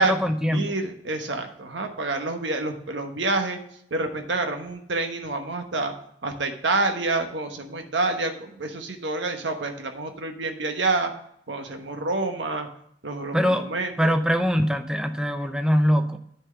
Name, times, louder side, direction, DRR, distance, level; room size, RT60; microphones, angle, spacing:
voice 1, 0.0-0.7 13.3-13.7 14.0-16.2, equal, 5° right, 7 dB, 0.6 m, -22 dB
voice 2, 0.5-3.6 3.9-5.9 6.2-11.1 11.5-12.7 13.0-14.2, right 3 dB, 90° right, 5 dB, 1.2 m, -27 dB
10.0 x 4.5 x 6.5 m, 0.69 s
head